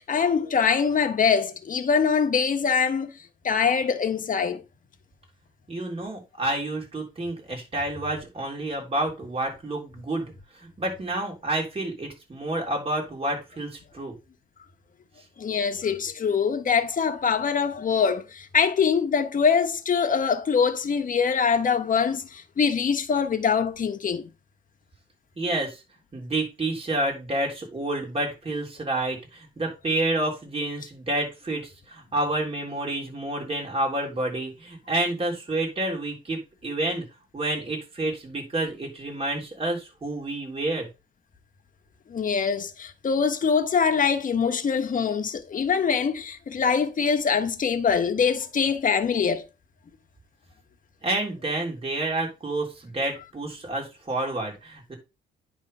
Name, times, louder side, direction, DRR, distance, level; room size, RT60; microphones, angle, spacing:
voice 1, 0.0-3.1 3.4-4.6 15.4-24.3 42.1-49.4, left 6 dB, 40° left, 1.2 m, -23 dB
voice 2, 5.7-10.3 10.6-14.1 25.4-25.8 26.1-37.0 37.3-40.9 51.0-55.0, right 2 dB, 30° right, 3.6 m, -29 dB
9.9 x 3.5 x 5.4 m
cardioid pair, 90°, 20 cm